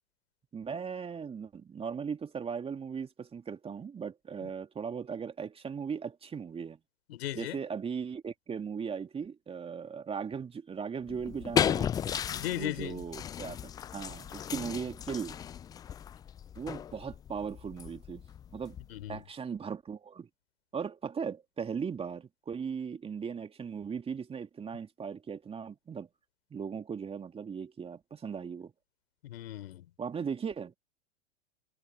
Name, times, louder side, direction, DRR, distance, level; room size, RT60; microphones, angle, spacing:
voice 1, 0.5-6.8 7.3-11.9 12.6-15.4 16.6-18.8 19.1-20.3 20.7-26.1 26.5-28.7 30.0-30.8, right 6 dB, 15° right, 2.7 m, -38 dB
voice 2, 7.1-7.6 12.3-13.0 18.9-19.2 29.2-29.8, left 13 dB, 60° left, 4.8 m, -37 dB
sound 1, 11.1-19.2, left 9 dB, 10° left, 0.4 m, -35 dB
figure-of-eight pair, 105°, 34 cm